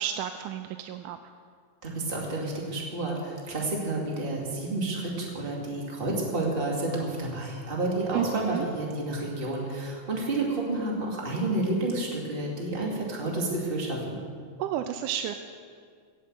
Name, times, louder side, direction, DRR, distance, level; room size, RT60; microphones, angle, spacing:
voice 1, 0.0-1.3 8.1-8.7 14.6-15.3, right 10 dB, 85° right, 8 dB, 2.1 m, -31 dB
voice 2, 1.8-14.2, right 2 dB, 20° right, -2 dB, 2.2 m, -30 dB
17.5 x 8.2 x 7.7 m, 2.1 s
omnidirectional pair, 3.6 m